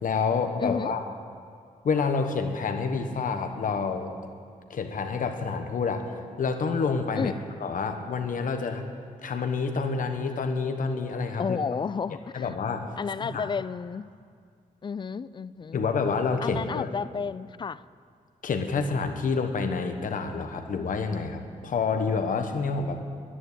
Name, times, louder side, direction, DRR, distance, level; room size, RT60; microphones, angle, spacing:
voice 1, 0.0-1.0 1.8-4.1 4.7-7.3 7.6-8.8 9.2-11.6 12.3-12.9 13.2-13.5 15.7-16.9 18.4-23.0, left 5 dB, 65° left, 6 dB, 1.3 m, -28 dB
voice 2, 0.6-0.9 7.1-7.4 11.4-12.5 13.0-14.1 14.8-15.8 16.4-17.8, left 6 dB, 30° left, 17 dB, 0.3 m, -31 dB
11.0 x 10.0 x 9.9 m, 2.1 s
wide cardioid pair, 115°, 15 cm